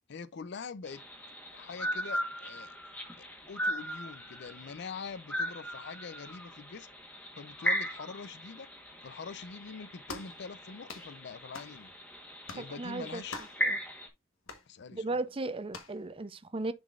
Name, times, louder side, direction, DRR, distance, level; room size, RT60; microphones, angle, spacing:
voice 1, 0.1-1.0 1.5-2.8 3.2-6.9 7.4-8.7 9.0-11.9 12.5-13.4 14.7-15.2, left 5 dB, 55° left, 0.5 m, -44 dB
sound 1, 0.9-14.1, equal, 5° left, 1.2 m, -38 dB
sound 2, 10.1-10.4 10.9-11.1 11.5-11.8 12.5-12.7 13.3-13.6 14.5-14.7 15.7-16.0, left 3 dB, 85° left, 1.2 m, -43 dB
voice 2, 12.6-13.2 13.6-13.8 14.9-16.7, right 2 dB, 25° right, 0.6 m, -36 dB
10.5 x 4.0 x 2.4 m
head